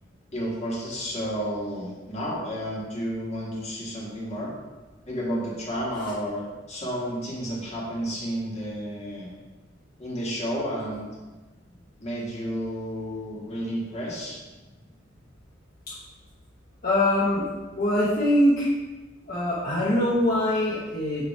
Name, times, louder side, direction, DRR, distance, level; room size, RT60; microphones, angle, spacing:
voice 1, 0.3-4.5 5.1-9.3 10.0-11.0 12.0-14.4, equal, 35° left, -6 dB, 1.7 m, -31 dB
voice 2, 16.8-17.4 17.8-18.7 19.3-21.3, left 1 dB, 50° left, -8 dB, 1.1 m, -23 dB
6.8 x 3.0 x 4.7 m, 1.2 s
head